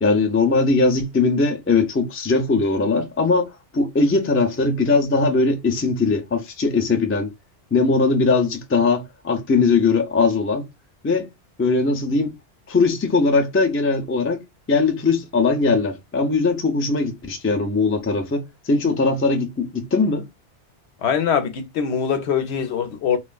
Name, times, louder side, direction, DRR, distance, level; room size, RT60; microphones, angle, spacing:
voice 1, 0.0-7.3 7.7-10.7 11.0-11.3 11.6-12.3 12.7-20.3, left 3 dB, 20° left, 0.3 m, -20 dB
voice 2, 21.0-23.2, left 7 dB, 70° left, 0.8 m, -22 dB
3.3 x 2.3 x 2.3 m
omnidirectional pair, 1.2 m